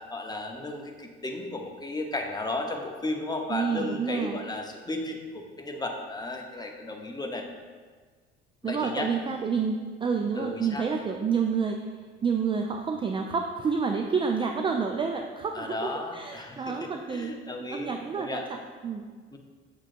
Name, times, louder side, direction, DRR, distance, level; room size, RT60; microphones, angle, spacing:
voice 1, 0.1-7.5 8.6-9.1 10.3-10.8 15.5-18.4 19.3-19.4, left 2 dB, 10° left, 3 dB, 0.8 m, -34 dB
voice 2, 3.5-4.4 8.6-11.8 12.2-19.1, right 5 dB, 15° right, 4 dB, 0.4 m, -29 dB
7.2 x 6.5 x 2.6 m, 1.5 s
figure-of-eight pair, 55°, 32 cm